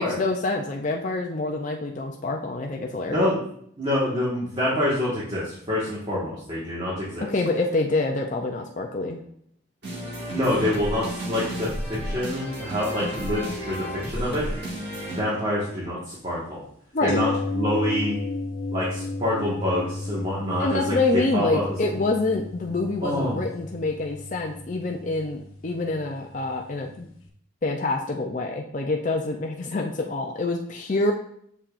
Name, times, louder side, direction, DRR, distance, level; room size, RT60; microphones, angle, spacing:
voice 1, 0.0-3.3 7.3-9.2 16.9-17.2 20.6-27.1 27.6-31.1, left 2 dB, 35° left, 1 dB, 0.5 m, -26 dB
voice 2, 3.1-3.4 3.8-7.3 10.3-11.7 12.0-14.5 15.1-16.6 17.0-17.3 17.5-18.2 18.7-20.9 21.3-21.6 23.0-23.4, left 1 dB, 25° right, -8 dB, 1.6 m, -26 dB
sound 1, 9.8-15.2, equal, 55° right, 1.9 m, -32 dB
sound 2, 17.1-26.9 27.2-27.3, left 3 dB, 90° left, 1.0 m, -33 dB
6.9 x 5.7 x 2.5 m, 0.65 s
head